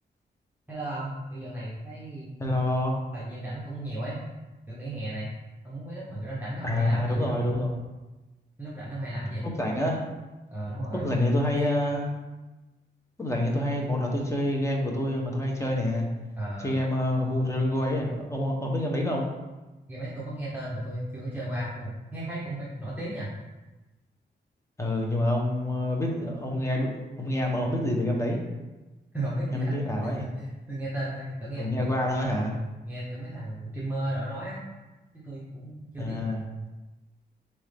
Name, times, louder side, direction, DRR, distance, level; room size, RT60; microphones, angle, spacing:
voice 1, 0.7-2.3 3.1-4.2 4.7-5.3 5.6-7.3 8.6-9.5 10.5-11.1 16.4-16.8 19.9-23.3 29.1-32.0 32.8-34.6 35.1-36.2, right 1 dB, 10° right, -8 dB, 1.0 m, -34 dB
voice 2, 2.4-2.9 6.6-7.8 9.4-10.0 10.9-12.1 13.2-16.1 16.6-19.3 24.8-26.9 27.2-28.4 29.5-30.2 31.6-32.6 36.0-36.4, left 1 dB, 15° left, -1 dB, 1.0 m, -27 dB
4.2 x 3.6 x 3.4 m, 1.1 s
cardioid pair, 90°, 19 cm